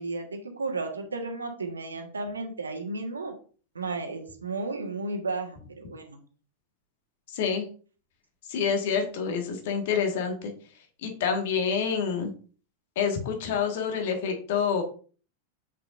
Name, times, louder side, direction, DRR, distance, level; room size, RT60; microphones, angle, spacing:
voice 1, 0.0-3.3 3.7-6.2, right 3 dB, 75° right, 5 dB, 1.4 m, -33 dB
voice 2, 7.3-7.6 8.5-10.5 11.0-12.3 12.9-14.8, left 6 dB, 55° left, 4 dB, 1.7 m, -27 dB
7.6 x 6.0 x 2.6 m, 0.39 s
figure-of-eight pair, 90°, 0 cm